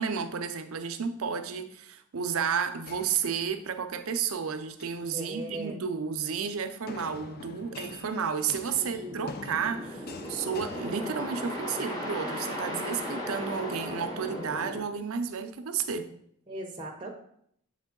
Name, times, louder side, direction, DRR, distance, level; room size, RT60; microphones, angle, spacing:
voice 1, 0.0-16.1, right 6 dB, 75° right, 9 dB, 0.5 m, -32 dB
sound 1, 2.9-3.9 4.6-5.1 6.9-11.7, left 3 dB, 45° left, 0.4 m, -46 dB
voice 2, 5.1-5.8 8.8-9.4 16.5-17.1, right 1 dB, 20° right, 0 dB, 0.6 m, -39 dB
sound 2, 8.6-14.8, left 1 dB, 15° left, 1.0 m, -36 dB
7.2 x 3.5 x 3.7 m, 0.68 s
head